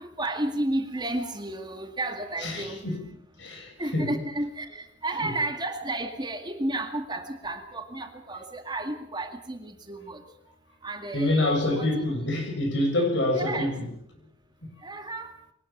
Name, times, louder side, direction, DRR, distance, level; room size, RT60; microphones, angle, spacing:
voice 1, 0.0-2.9 3.8-10.2 10.8-12.1 13.4-13.7 14.8-15.3, right 2 dB, 20° right, 2.1 m, -32 dB
voice 2, 2.4-3.0 3.4-4.1 5.2-5.3 11.1-13.8, left 1 dB, 65° left, 7.2 m, -26 dB
22.5 x 19.0 x 7.3 m
head